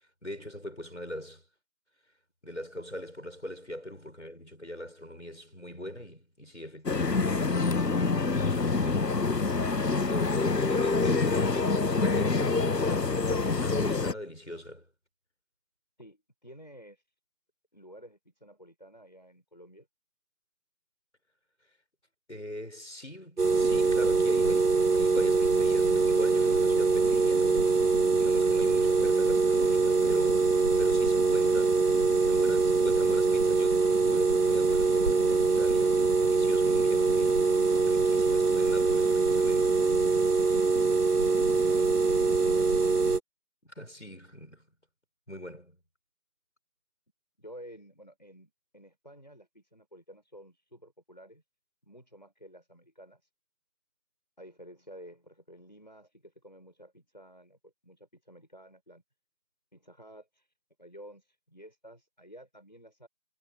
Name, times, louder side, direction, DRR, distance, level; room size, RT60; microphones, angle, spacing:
voice 1, 0.2-1.4 2.4-6.9 7.1-8.0 8.4-9.6 9.9-14.9 22.3-27.8 28.2-37.6 37.8-39.8 43.6-44.7 45.3-45.8, left 1 dB, 45° left, 5.9 m, -42 dB
sound 1, 6.9-14.1, left 3 dB, 75° left, 1.1 m, -26 dB
voice 2, 16.0-17.0 17.7-19.9 40.6-41.0 47.4-51.4 51.8-53.3 54.4-59.0 59.7-60.5 60.8-63.1, equal, 25° left, 6.5 m, -52 dB
lamp electricity buzzing, 23.4-43.2, right 4 dB, 65° right, 1.6 m, -24 dB
figure-of-eight pair, 180°, 49 cm